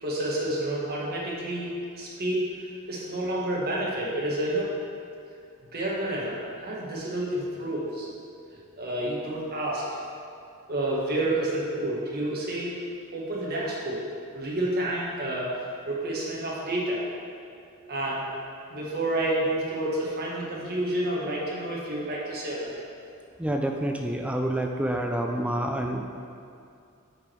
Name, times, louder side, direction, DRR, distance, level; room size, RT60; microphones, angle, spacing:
voice 1, 0.0-2.4 2.9-4.7 5.7-8.1 8.8-10.0 10.7-12.7 13.1-14.0 14.3-17.0 17.9-18.3 18.7-22.8, right 1 dB, 45° right, -5 dB, 1.7 m, -29 dB
voice 2, 23.4-26.0, right 1 dB, 5° right, 2 dB, 0.4 m, -28 dB
8.6 x 5.1 x 4.6 m, 2.4 s
head